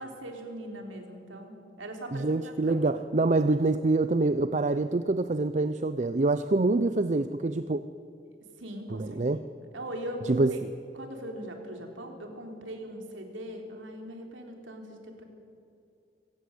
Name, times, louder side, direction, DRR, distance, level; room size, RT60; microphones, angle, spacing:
voice 1, 0.0-2.8 8.6-9.5 9.7-10.6 10.9-15.2, right 1 dB, 90° right, 3 dB, 3.6 m, -40 dB
voice 2, 2.1-7.8 8.9-9.4 10.3-10.7, right 2 dB, 40° right, 11 dB, 0.5 m, -26 dB
25.0 x 16.5 x 8.0 m, 2.7 s
head